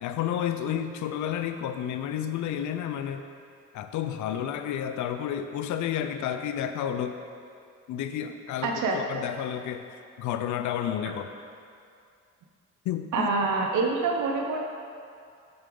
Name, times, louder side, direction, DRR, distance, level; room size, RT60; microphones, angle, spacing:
voice 1, 0.0-3.2 3.7-7.2 7.9-11.3 12.8-13.3, left 9 dB, 75° left, 8 dB, 0.5 m, -31 dB
voice 2, 8.6-9.0 13.1-14.6, right 3 dB, 75° right, 2 dB, 0.8 m, -26 dB
7.9 x 6.9 x 3.8 m, 2.4 s
cardioid pair, 90°, 30 cm